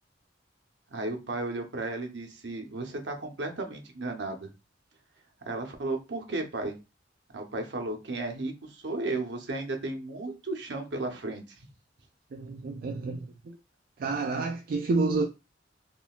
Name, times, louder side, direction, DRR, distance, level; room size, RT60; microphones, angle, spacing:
voice 1, 0.9-4.5 5.5-6.7 7.3-11.7, right 2 dB, 70° right, 0.7 m, -34 dB
voice 2, 12.3-13.3 14.0-15.3, right 3 dB, 50° right, 0.3 m, -29 dB
3.7 x 2.3 x 2.3 m
head